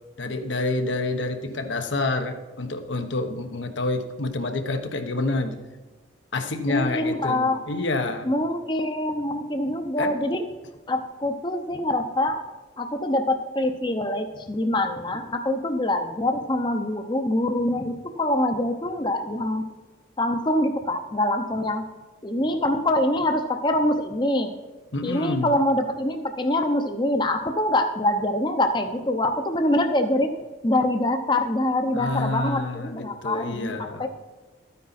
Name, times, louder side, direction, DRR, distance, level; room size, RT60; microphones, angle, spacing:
voice 1, 0.2-5.6 6.3-8.3 10.0-10.2 24.9-25.5 31.9-34.1, left 2 dB, 80° left, 6 dB, 1.1 m, -28 dB
voice 2, 6.7-7.6 8.2-10.4 10.9-12.4 12.8-19.6 20.2-21.8 22.2-24.5 25.0-30.4 30.6-34.1, left 1 dB, 25° left, 6 dB, 0.7 m, -24 dB
13.0 x 9.5 x 4.2 m, 1.3 s
head